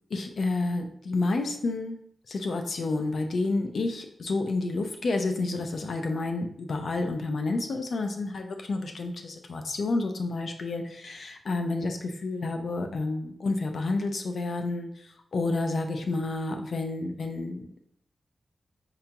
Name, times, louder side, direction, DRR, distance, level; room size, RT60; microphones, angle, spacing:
voice 1, 0.1-2.0 2.3-14.9 15.3-17.7, left 3 dB, 70° left, 5 dB, 0.5 m, -30 dB
4.9 x 2.3 x 2.8 m, 0.68 s
wide cardioid pair, 95°, 0 cm